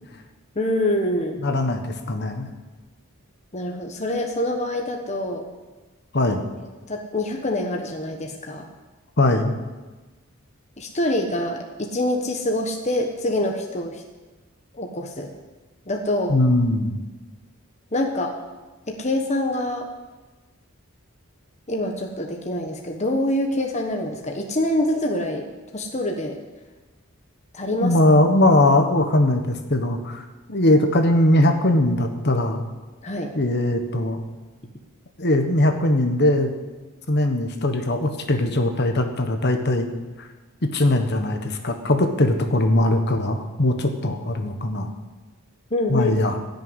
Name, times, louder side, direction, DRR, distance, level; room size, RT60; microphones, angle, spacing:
voice 1, 0.5-1.4 3.5-5.5 6.9-8.7 10.8-14.0 14.7-15.3 15.9-16.4 17.9-18.4 18.9-19.9 21.7-25.5 25.7-26.4 27.5-28.0 33.0-33.3 45.7-46.2, left 1 dB, 30° left, 2 dB, 1.2 m, -25 dB
voice 2, 1.4-2.5 6.1-6.5 9.2-9.5 16.3-17.0 27.8-32.6 33.3-34.2 35.2-36.5 37.1-39.9 40.2-40.3 40.7-44.9 45.9-46.4, left 1 dB, 50° left, 6 dB, 1.4 m, -20 dB
16.0 x 6.8 x 9.7 m, 1.2 s
head